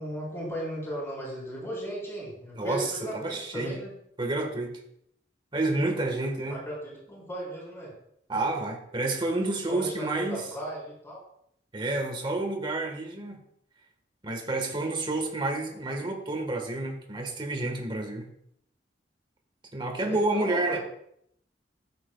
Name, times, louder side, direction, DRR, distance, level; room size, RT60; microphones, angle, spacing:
voice 1, 0.0-3.9 6.5-7.9 9.7-11.2 20.0-20.8, equal, 15° left, -5 dB, 3.9 m, -36 dB
voice 2, 2.5-3.8 4.2-4.8 5.5-6.6 8.3-10.5 11.7-13.4 14.2-18.3 19.7-20.8, right 2 dB, 30° right, 3 dB, 1.5 m, -29 dB
14.5 x 7.7 x 2.4 m, 0.70 s
head